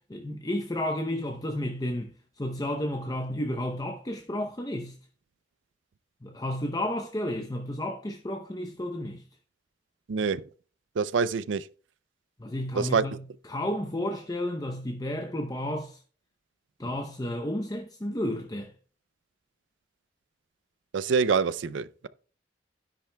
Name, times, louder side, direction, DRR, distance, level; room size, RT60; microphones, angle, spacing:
voice 1, 0.1-2.1 2.4-4.9 6.2-9.2 12.4-16.0 16.8-18.7, left 1 dB, 20° left, 0.7 m, -32 dB
voice 2, 10.1-10.4 11.0-11.6 12.7-13.0 20.9-22.1, right 5 dB, 75° right, 0.4 m, -26 dB
12.0 x 10.0 x 2.2 m
head